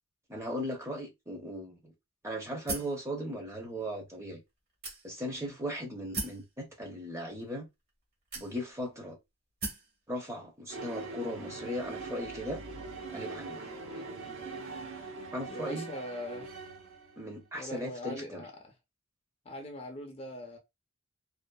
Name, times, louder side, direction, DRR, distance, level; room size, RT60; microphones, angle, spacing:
voice 1, 0.3-1.9 2.2-4.4 5.0-7.7 8.3-9.2 10.1-12.6 13.1-13.7 15.0-15.1 15.3-15.9 17.2-18.4, equal, 15° right, 0.6 m, -37 dB
sound 1, 2.7-3.0 3.8-3.9 4.8-5.4 6.1-6.5 7.4-7.5 8.3-8.9 9.6-9.9, right 3 dB, 45° right, 1.1 m, -37 dB
sound 2, 10.7-17.3, right 3 dB, 75° right, 0.8 m, -42 dB
voice 2, 15.5-16.5 17.5-18.7 19.5-20.6, left 1 dB, 30° left, 0.5 m, -42 dB
2.6 x 2.4 x 2.2 m
head